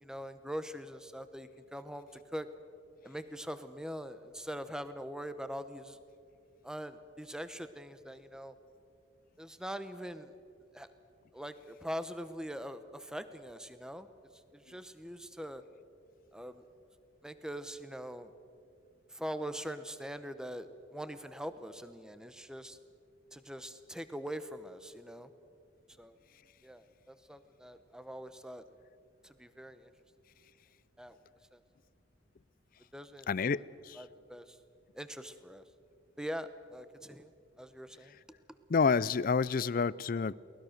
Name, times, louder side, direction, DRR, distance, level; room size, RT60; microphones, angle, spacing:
voice 1, 0.0-2.5 3.0-6.0 6.6-8.5 9.4-10.3 10.7-10.9 11.3-15.6 16.3-16.6 17.2-18.3 19.1-22.8 23.3-25.3 26.0-26.2 26.6-28.6 29.2-29.9 31.0-31.2 31.5-31.6 32.9-33.6 33.9-34.6 34.9-35.6 36.2-37.3 37.6-38.2, equal, 5° right, 11 dB, 0.9 m, -43 dB
voice 2, 33.3-34.0 38.7-40.3, left 5 dB, 45° left, 20 dB, 0.4 m, -29 dB
23.0 x 19.5 x 6.6 m, 2.4 s
head